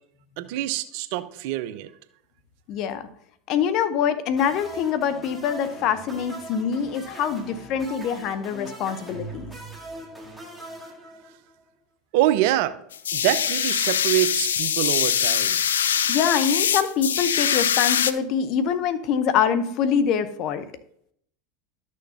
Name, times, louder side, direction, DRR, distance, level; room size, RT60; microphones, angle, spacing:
voice 1, 0.4-1.9 12.1-12.8 13.1-15.6, right 14 dB, 60° right, 13 dB, 0.6 m, -25 dB
voice 2, 2.7-3.1 3.5-9.5 16.1-20.6, left 7 dB, 50° left, 11 dB, 0.8 m, -24 dB
sound 1, 4.3-11.6, right 1 dB, ahead, 2.1 m, -40 dB
sound 2, 12.9-18.1, left 8 dB, 80° left, 0.4 m, -23 dB
12.5 x 6.4 x 2.8 m, 0.68 s
hypercardioid pair, 85°, 0 cm